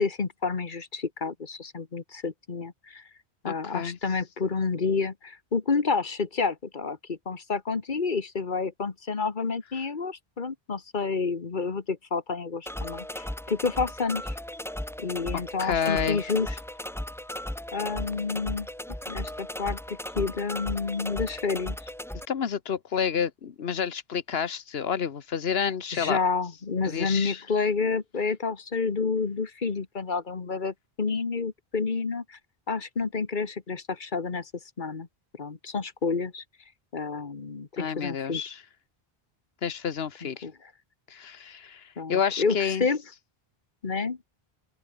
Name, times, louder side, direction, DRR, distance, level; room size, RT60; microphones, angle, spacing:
voice 1, 0.0-3.0 3.4-14.4 15.0-16.6 17.7-18.7 19.1-21.8 25.9-32.4 32.7-34.5 34.8-35.1 35.4-36.4 36.9-38.4 40.2-40.5 42.0-43.0 43.8-44.2, left 4 dB, 50° left, 1.5 m, -29 dB
voice 2, 3.5-4.0 15.6-16.2 22.3-26.2 26.9-27.4 37.8-38.6 39.6-40.5 41.1-42.9, left 7 dB, 75° left, 1.4 m, -29 dB
sound 1, 12.7-22.3, equal, 5° left, 0.6 m, -36 dB
open air
omnidirectional pair, 1.0 m